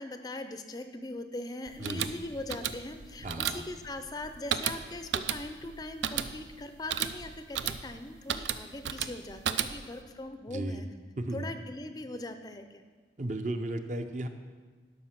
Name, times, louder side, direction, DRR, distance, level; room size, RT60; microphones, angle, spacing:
voice 1, 0.0-10.9 11.3-12.9, left 2 dB, 20° left, 8 dB, 0.4 m, -40 dB
sound 1, 1.7-10.0, right 8 dB, 85° right, 0.5 m, -34 dB
voice 2, 1.8-2.1 3.2-3.6 10.5-10.9 11.2-11.5 13.2-14.3, right 1 dB, 45° right, 7 dB, 0.6 m, -34 dB
12.0 x 5.6 x 5.9 m, 1.4 s
head